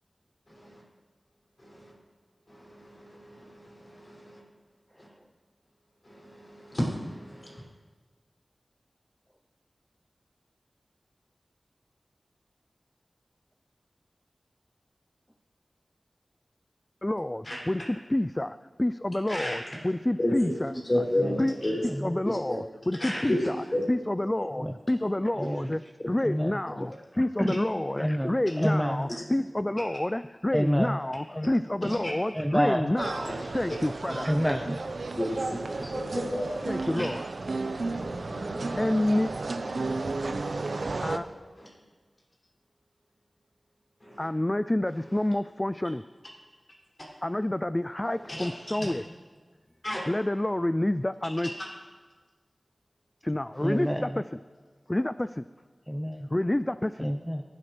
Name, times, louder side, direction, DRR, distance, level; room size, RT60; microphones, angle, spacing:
voice 1, 0.5-0.8 1.6-1.9 2.5-4.4 5.0-5.1 6.0-7.6 17.4-17.6 19.3-19.6 20.2-20.6 20.8-21.8 22.2-22.6 23.0-23.8 31.8-32.1 33.3-33.5 35.2-36.5 37.0-37.1 37.8-38.8 40.3-40.7 41.6-41.7 44.0-44.3 48.1-48.8 49.8-50.0 53.5-53.8, left 1 dB, 40° left, -5 dB, 6.2 m, -33 dB
voice 2, 17.0-20.7 21.4-21.5 22.0-23.6 23.9-34.3 36.7-37.2 38.8-39.3 41.0-41.3 44.2-46.0 47.2-49.0 50.1-51.5 53.2-54.2 54.9-55.4 56.3-57.1, left 1 dB, 20° left, 13 dB, 0.3 m, -28 dB
voice 3, 21.9-22.2 24.5-24.8 25.4-25.7 26.2-26.6 27.1-27.5 28.0-29.1 30.5-31.0 32.3-32.9 34.2-34.8 37.0-37.1 53.6-54.2 55.9-56.3 57.0-57.4, equal, ahead, 5 dB, 0.8 m, -29 dB
sound 1, 33.0-41.2, right 3 dB, 75° right, 1.0 m, -33 dB
25.0 x 13.0 x 3.4 m, 1.4 s
wide cardioid pair, 70°, 0 cm